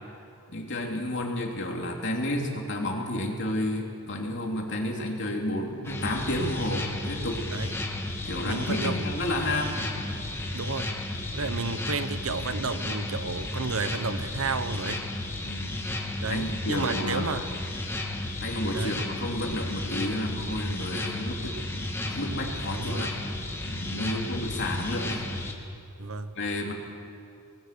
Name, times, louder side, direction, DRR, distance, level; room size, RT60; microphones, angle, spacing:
voice 1, 0.5-7.5 8.2-9.8 15.4-15.9 16.3-17.6 18.4-23.1 23.6-25.2 26.3-26.7, left 1 dB, 55° left, 0 dB, 3.2 m, -31 dB
sound 1, 5.8-25.5, left 1 dB, 10° left, 1.9 m, -33 dB
voice 2, 7.5-7.8 8.4-8.9 10.5-11.0 11.3-15.1 16.2-17.4 18.7-19.0 22.7-23.0 23.9-24.3 26.0-26.3, right 4 dB, 75° right, 11 dB, 1.1 m, -32 dB
25.5 x 20.0 x 6.9 m, 2.5 s
head